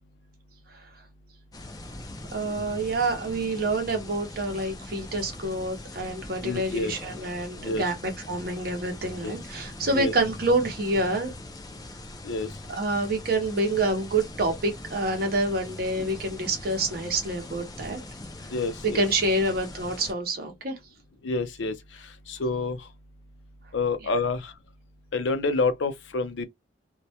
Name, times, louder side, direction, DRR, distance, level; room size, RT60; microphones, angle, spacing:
sound 1, 1.5-20.1, left 2 dB, 20° left, 0.4 m, -41 dB
voice 1, 2.3-11.3 12.7-18.0 18.9-20.8, right 2 dB, 50° right, 0.6 m, -27 dB
voice 2, 6.4-6.9 7.6-7.8 9.2-9.3 9.9-10.1 12.2-12.5 18.5-19.0 21.2-21.7 22.3-22.8 23.7-24.5 25.1-26.4, left 3 dB, 70° left, 0.5 m, -27 dB
2.2 x 2.1 x 2.7 m
head